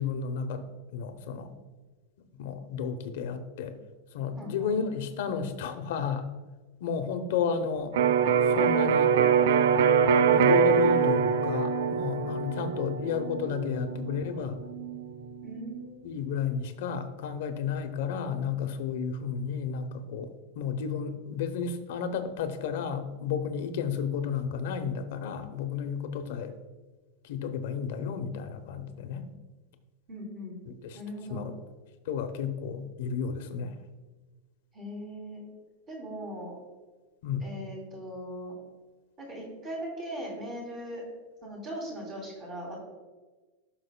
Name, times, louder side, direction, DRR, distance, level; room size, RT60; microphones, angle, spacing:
voice 1, 0.0-1.5 2.4-3.7 4.1-6.3 6.8-8.0 8.5-9.1 10.3-14.6 16.0-26.5 27.2-29.3 30.7-31.0 31.3-31.6 32.1-33.8 37.2-37.5, left 6 dB, 60° left, 8 dB, 0.8 m, -32 dB
voice 2, 4.4-4.7 15.4-16.1 30.1-30.6 30.9-31.5 34.7-35.4 35.9-36.6 37.4-38.5 39.2-41.0 41.4-42.8, equal, 20° right, -3 dB, 2.6 m, -39 dB
Electric guitar, 7.9-15.7, right 7 dB, 70° right, 0.4 m, -24 dB
15.5 x 6.1 x 2.2 m, 1.3 s
supercardioid pair, 180°, 0 cm